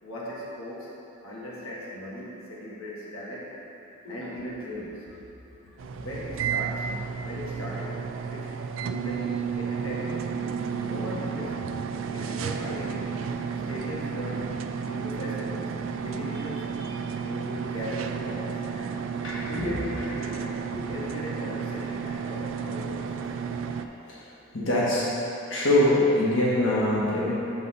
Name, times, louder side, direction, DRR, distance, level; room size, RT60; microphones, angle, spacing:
voice 1, 0.0-0.9 1.2-3.5 4.1-5.0 6.0-6.9 7.2-8.0 8.3-10.3 10.9-11.6 12.1-13.2 13.7-14.6 14.8-16.7 17.2-19.0 19.4-23.1, equal, 85° left, -6 dB, 1.4 m, -38 dB
sound 1, 5.8-23.9, right 6 dB, 80° right, 0.4 m, -32 dB
voice 2, 19.2-20.0 20.7-20.9 24.1-24.2 24.5-25.1 25.5-27.3, left 1 dB, 65° left, -7 dB, 1.3 m, -24 dB
6.6 x 4.2 x 6.4 m, 3.0 s
head